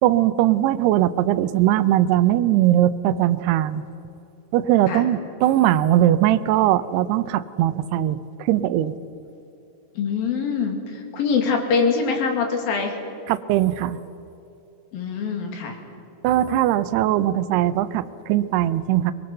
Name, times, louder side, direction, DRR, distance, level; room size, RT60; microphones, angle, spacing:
voice 1, 0.0-3.8 4.5-8.9 13.3-14.0 16.2-19.1, right 13 dB, 85° right, 14 dB, 2.8 m, -20 dB
voice 2, 10.0-13.0 14.9-15.8, left 5 dB, 65° left, 3 dB, 4.0 m, -24 dB
24.0 x 22.0 x 6.7 m, 2.9 s
omnidirectional pair, 4.6 m